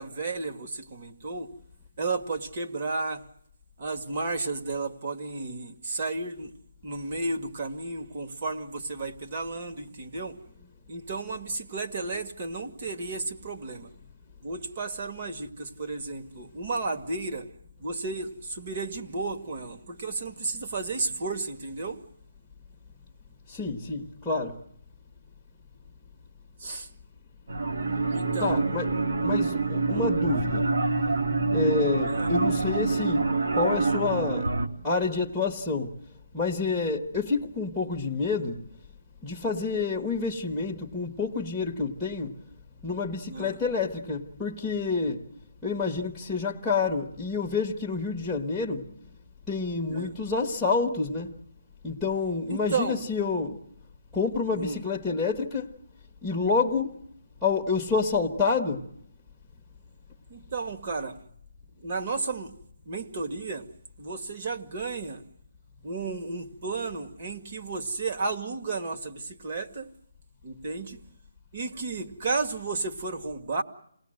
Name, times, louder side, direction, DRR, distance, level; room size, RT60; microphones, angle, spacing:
voice 1, 0.0-1.5 2.0-3.2 3.8-6.5 6.8-10.4 10.9-13.9 14.4-17.5 17.8-22.0 26.6-26.9 28.1-28.6 29.2-29.3 29.9-30.2 32.1-32.3 43.2-43.6 49.9-50.1 52.5-53.0 54.6-54.8 60.3-61.2 61.8-62.5 62.9-63.7 64.0-65.2 65.8-69.9 70.4-71.0 71.5-73.6, right 3 dB, 30° right, 1.9 m, -33 dB
voice 2, 23.5-24.6 28.4-30.7 31.5-34.5 34.8-35.9 36.3-38.6 39.2-42.4 42.8-45.3 45.6-48.9 49.5-51.3 51.8-53.6 54.1-55.7 56.2-57.0 57.4-58.8, left 4 dB, ahead, 1.3 m, -28 dB
sound 1, 27.5-34.7, right 3 dB, 60° right, 2.5 m, -26 dB
29.0 x 19.0 x 7.8 m
hypercardioid pair, 175°, 0 cm